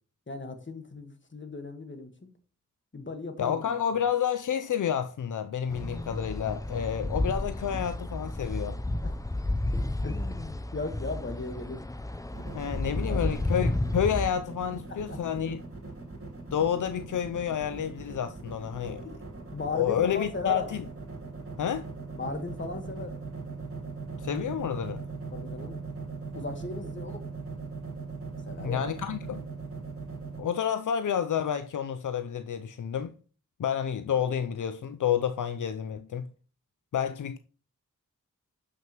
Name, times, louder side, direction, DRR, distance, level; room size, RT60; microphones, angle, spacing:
voice 1, 0.3-2.1 2.9-3.7 8.5-8.6 9.0-9.2 10.0-11.8 12.8-13.5 14.9-15.4 19.5-20.7 22.1-23.2 25.3-25.8 26.3-27.3 28.4-28.9, left 3 dB, 40° left, 1.4 m, -37 dB
voice 2, 3.4-8.8 12.5-15.6 16.5-19.0 19.7-20.8 21.6-21.9 24.2-25.0 28.6-29.4 30.4-33.1 33.6-36.3 36.9-37.4, left 8 dB, 75° left, 0.5 m, -29 dB
sound 1, 5.7-14.3, left 1 dB, 10° left, 0.5 m, -32 dB
sound 2, 12.3-30.4, right 4 dB, 45° right, 2.8 m, -40 dB
7.4 x 6.0 x 2.9 m
wide cardioid pair, 65°, 31 cm